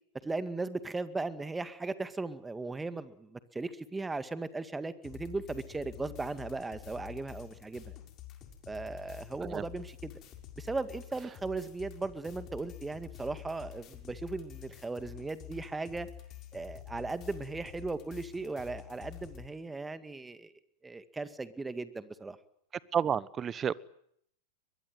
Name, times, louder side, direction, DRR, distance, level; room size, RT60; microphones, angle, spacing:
voice 1, 0.2-7.8 8.7-10.1 10.6-16.1 16.5-20.5 20.8-22.4, right 3 dB, 10° right, 12 dB, 2.1 m, -37 dB
sound 1, 5.0-19.5, left 12 dB, 40° left, 6.4 m, -48 dB
voice 2, 22.9-23.7, right 8 dB, 25° right, 20 dB, 1.2 m, -30 dB
22.5 x 21.5 x 9.5 m, 0.69 s
hypercardioid pair, 95°, 0 cm